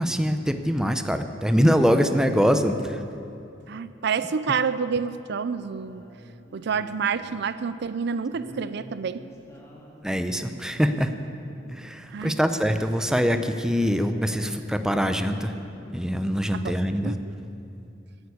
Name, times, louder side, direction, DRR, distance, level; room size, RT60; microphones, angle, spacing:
voice 1, 0.0-3.0 10.0-11.1 11.7-15.5 15.9-17.1, equal, 5° right, 8 dB, 0.6 m, -23 dB
voice 2, 3.7-6.0 6.5-9.2 12.1-12.3 16.5-16.8 17.0-17.2, right 6 dB, 60° right, 13 dB, 0.5 m, -28 dB
sound 1, 5.5-7.4 8.3-12.3 12.7-12.8 13.0-14.7 15.0-15.7, equal, 15° left, 2.0 m, -47 dB
14.5 x 9.4 x 8.4 m, 2.7 s
head